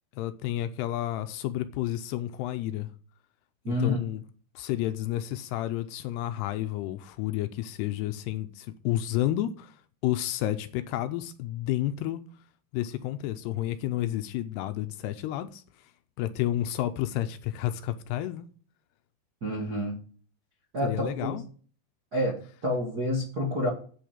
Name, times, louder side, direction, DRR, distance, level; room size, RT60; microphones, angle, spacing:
voice 1, 0.2-2.9 3.7-4.2 4.6-9.8 10.0-12.2 12.7-15.6 16.2-18.5 20.8-21.4, left 13 dB, 80° left, 2.6 m, -31 dB
voice 2, 3.6-4.0 19.4-20.0 20.7-21.4 22.1-23.7, left 1 dB, 50° right, 1.1 m, -28 dB
8.5 x 6.5 x 8.1 m
omnidirectional pair, 5.1 m